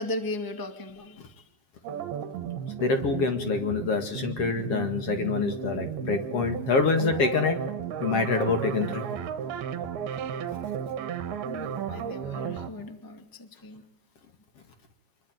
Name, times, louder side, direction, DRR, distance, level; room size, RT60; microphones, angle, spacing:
voice 1, 0.0-1.4 11.4-13.8, left 2 dB, 15° left, 7 dB, 0.6 m, -37 dB
sound 1, 1.8-12.7, right 8 dB, 70° right, 3.1 m, -34 dB
voice 2, 2.8-7.6 8.0-9.0, left 4 dB, 45° left, 7 dB, 2.4 m, -26 dB
26.5 x 22.0 x 9.4 m, 0.78 s
omnidirectional pair, 4.9 m